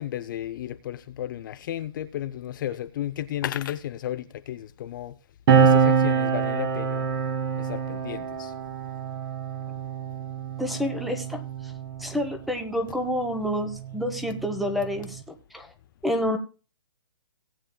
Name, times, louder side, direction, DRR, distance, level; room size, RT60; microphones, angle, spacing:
voice 1, 0.0-5.1 5.6-7.1 7.6-8.5, left 12 dB, 40° left, 0.5 m, -33 dB
sound 1, 5.5-12.4 13.4-15.2, right 6 dB, 45° right, 1.6 m, -25 dB
voice 2, 10.6-11.7 12.0-15.7 16.0-16.4, left 1 dB, ahead, 0.9 m, -29 dB
18.0 x 8.8 x 2.2 m
hypercardioid pair, 145°, 16 cm